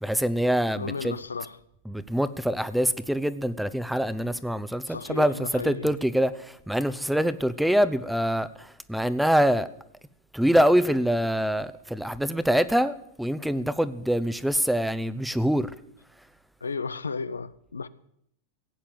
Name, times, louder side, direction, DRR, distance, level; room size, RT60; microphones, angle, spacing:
voice 1, 0.0-1.2 1.9-9.7 10.3-15.7, equal, ahead, 0.9 m, -25 dB
voice 2, 0.8-1.6 4.9-6.0 16.6-17.9, left 5 dB, 90° left, 0.7 m, -34 dB
17.0 x 8.6 x 7.8 m
hypercardioid pair, 100°, 0 cm